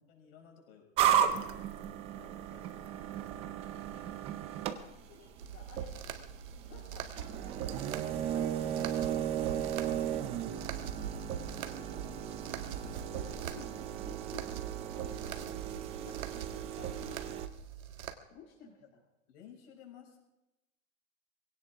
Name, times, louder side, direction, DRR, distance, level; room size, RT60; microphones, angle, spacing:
voice 1, 0.0-1.7 2.1-4.2 6.7-7.2 18.8-18.9 19.3-20.2, left 8 dB, 45° left, 1 dB, 6.0 m, -57 dB
sound 1, 1.0-17.5, right 10 dB, 15° right, 0.5 m, -35 dB
voice 2, 4.8-6.1 6.6-8.0 8.3-9.2 9.4-10.1 10.4-11.2 11.5-12.8 13.1-17.5 18.3-19.0, left 6 dB, 30° left, -1 dB, 2.3 m, -56 dB
sound 2, 5.4-18.1, right 8 dB, 80° right, 1.8 m, -42 dB
21.5 x 17.0 x 3.6 m, 0.96 s
hypercardioid pair, 150°, 42 cm